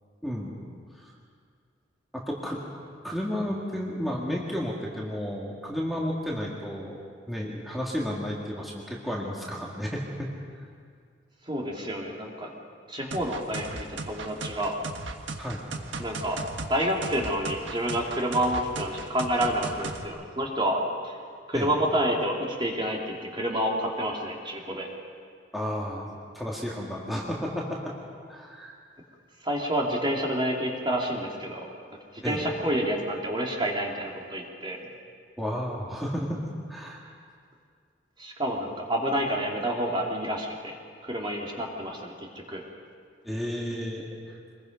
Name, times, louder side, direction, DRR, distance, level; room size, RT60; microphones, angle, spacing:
voice 1, 0.2-0.6 0.9-1.1 2.1-2.6 3.0-7.0 7.3-10.3 10.6-10.7 15.4-15.6 21.5-21.7 25.5-27.9 28.3-28.7 32.2-32.5 35.4-36.4 36.7-37.0 43.2-44.4, equal, ahead, -4 dB, 2.0 m, -32 dB
voice 2, 11.5-12.5 12.9-14.7 16.0-16.4 16.7-21.2 21.5-24.9 29.4-31.7 32.2-34.8 38.2-40.7 41.0-42.6, equal, 25° right, -1 dB, 2.6 m, -29 dB
sound 1, 13.1-20.1, right 3 dB, 80° right, 1.4 m, -37 dB
25.5 x 21.5 x 5.3 m, 2.1 s
head